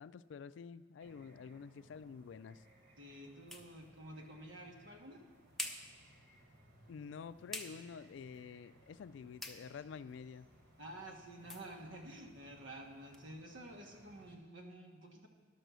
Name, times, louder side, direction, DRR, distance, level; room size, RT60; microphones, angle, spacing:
voice 1, 0.0-2.6 6.9-10.5, left 6 dB, 70° left, 16 dB, 0.3 m, -49 dB
sound 1, 1.0-14.4, right 1 dB, 60° right, 1.5 m, -64 dB
sound 2, 1.8-13.3, left 1 dB, ahead, 0.6 m, -52 dB
voice 2, 3.0-5.2 10.8-15.3, right 1 dB, 85° right, 2 dB, 1.4 m, -51 dB
11.0 x 6.7 x 6.2 m, 1.4 s
head